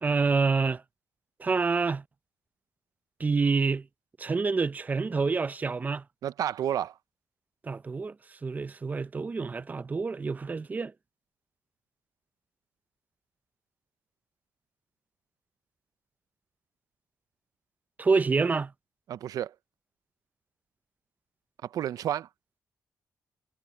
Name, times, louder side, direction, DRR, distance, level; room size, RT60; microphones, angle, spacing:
voice 1, 0.0-0.8 1.4-2.0 3.2-3.9 4.2-6.0 7.6-8.1 8.4-10.9 18.0-18.7, right 4 dB, 25° right, 0.6 m, -27 dB
voice 2, 6.2-7.0 19.1-19.5 21.6-22.3, right 10 dB, 80° right, 0.6 m, -31 dB
cardioid pair, 125°, 6 cm